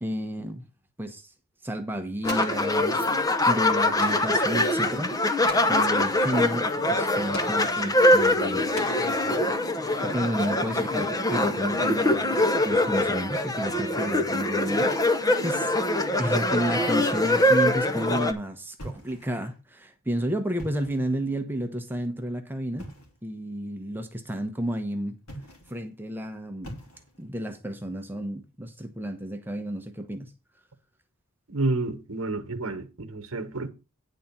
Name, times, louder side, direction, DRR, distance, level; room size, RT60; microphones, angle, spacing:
voice 1, 0.0-0.6 1.0-1.3 1.6-5.1 5.7-8.7 9.7-15.8 16.2-22.9 23.2-25.2 25.7-26.8 27.2-30.3, right 1 dB, 10° right, 0.9 m, -31 dB
sound 1, 2.2-18.3, left 1 dB, 15° left, 0.7 m, -23 dB
Explosion, 2.3-3.2 4.0-4.5 5.5-6.0 7.3-7.9 8.8-9.6, left 2 dB, 45° left, 1.6 m, -40 dB
sound 2, 18.8-19.6 20.4-21.1 22.8-23.2 25.2-25.9 26.6-27.3, right 1 dB, 75° left, 2.7 m, -43 dB
voice 2, 31.5-33.7, right 2 dB, 65° right, 1.3 m, -29 dB
10.0 x 4.1 x 7.2 m
head